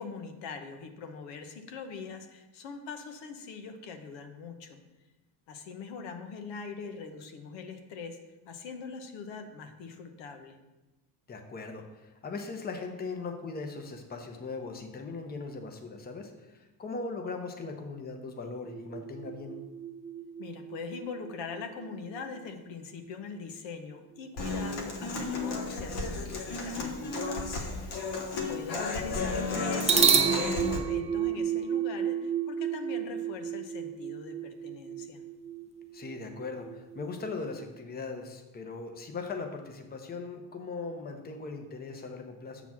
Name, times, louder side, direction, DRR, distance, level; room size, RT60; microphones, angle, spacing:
voice 1, 0.0-4.8 5.5-8.2 8.5-10.6 20.4-28.1 28.5-35.2, left 5 dB, 80° left, 6 dB, 1.0 m, -42 dB
voice 2, 11.3-19.6 27.6-28.0 35.9-42.6, left 4 dB, 20° left, 4 dB, 0.8 m, -39 dB
sound 1, 18.7-22.2 29.8-37.7, right 7 dB, 15° right, 0.5 m, -31 dB
Human voice / Acoustic guitar, 24.4-30.8, left 3 dB, 65° left, 1.3 m, -33 dB
7.3 x 4.0 x 6.0 m, 1.1 s
cardioid pair, 130°, 44 cm